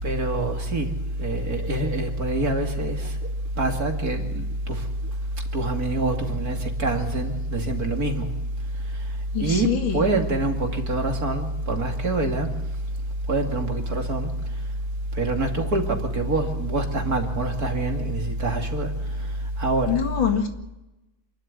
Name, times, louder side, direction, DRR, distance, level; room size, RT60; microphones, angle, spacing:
voice 1, 0.0-0.9 1.2-3.1 3.6-4.8 5.5-8.3 9.4-12.5 13.3-14.3 15.1-18.9 19.6-20.0, right 2 dB, 50° right, 2.9 m, -25 dB
voice 2, 9.3-10.0 19.9-20.5, left 7 dB, 70° left, 2.7 m, -24 dB
27.5 x 12.5 x 9.6 m
omnidirectional pair, 2.2 m